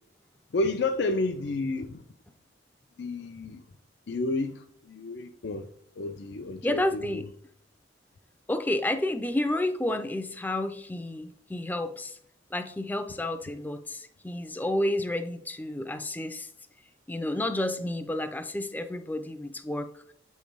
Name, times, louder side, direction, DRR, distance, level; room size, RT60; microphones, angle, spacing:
voice 1, 0.5-2.0 3.0-3.6 4.1-5.7 6.0-7.3, left 2 dB, 70° left, 0.4 m, -31 dB
voice 2, 6.6-7.2 8.5-12.2 12.5-16.5 17.1-19.9, left 1 dB, 10° left, 0.4 m, -30 dB
7.7 x 3.2 x 5.2 m
head